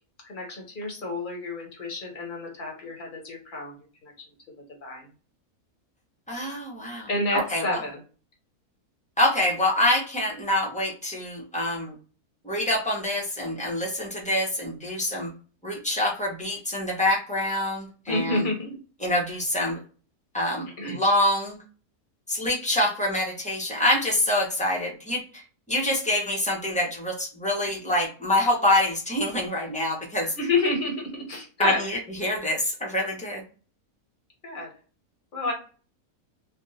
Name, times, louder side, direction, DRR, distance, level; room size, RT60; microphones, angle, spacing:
voice 1, 0.2-3.8 4.0-4.3 4.8-5.1 7.1-8.0 18.1-18.8 20.8-21.0 30.4-31.8 34.4-34.7 35.3-35.5, left 2 dB, 40° left, 0 dB, 1.0 m, -29 dB
voice 2, 6.3-7.8 9.2-11.9 12.4-15.3 15.6-18.5 19.0-19.8 20.3-21.6 22.3-25.2 25.7-30.3 31.6-33.4, left 1 dB, 5° left, -3 dB, 0.6 m, -26 dB
3.4 x 2.2 x 2.7 m, 0.38 s
omnidirectional pair, 1.6 m